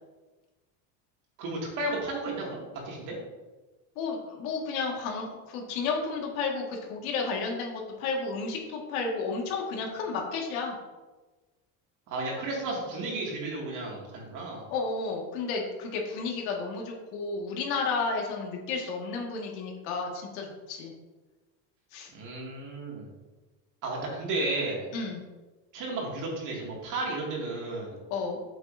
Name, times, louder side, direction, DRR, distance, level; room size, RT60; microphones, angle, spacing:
voice 1, 1.4-3.2 12.1-14.7 22.1-23.1 23.8-24.9 25.7-28.0, right 2 dB, 50° right, -2 dB, 2.4 m, -33 dB
voice 2, 4.0-10.8 14.7-20.9 21.9-22.1 24.9-25.3 28.1-28.4, left 4 dB, 90° left, 0 dB, 2.0 m, -32 dB
7.9 x 7.5 x 2.7 m, 1.2 s
cardioid pair, 160°, 40 cm